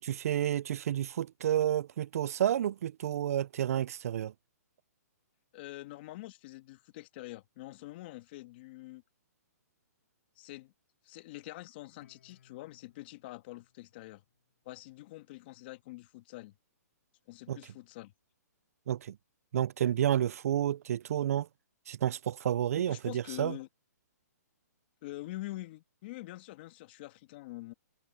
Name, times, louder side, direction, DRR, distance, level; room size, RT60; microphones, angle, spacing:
voice 1, 0.0-4.3 17.5-17.6 18.9-19.2 19.5-21.5 21.9-23.6, right 10 dB, 60° right, 0.4 m, -30 dB
voice 2, 5.5-9.0 10.4-10.7 11.0-14.2 14.7-16.5 17.3-18.1 22.7-23.7 25.0-27.7, left 18 dB, 35° left, 1.7 m, -45 dB
Guitar, 12.0-15.2, left 8 dB, 65° left, 7.8 m, -67 dB
hypercardioid pair, 160°, 9 cm